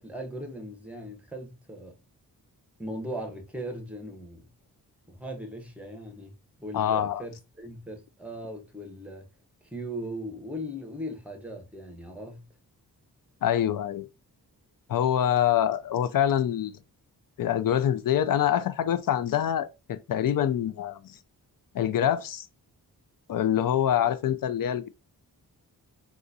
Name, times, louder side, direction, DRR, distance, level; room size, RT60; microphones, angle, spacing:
voice 1, 0.0-2.0 2.8-4.5 5.1-6.3 6.6-9.3 9.7-12.5, equal, 5° right, 1.0 m, -38 dB
voice 2, 6.7-7.2 13.4-14.1 14.9-16.8 17.4-21.2 21.7-22.5 23.3-24.9, left 10 dB, 60° left, 0.5 m, -25 dB
3.8 x 2.4 x 2.6 m
cardioid pair, 80°, 38 cm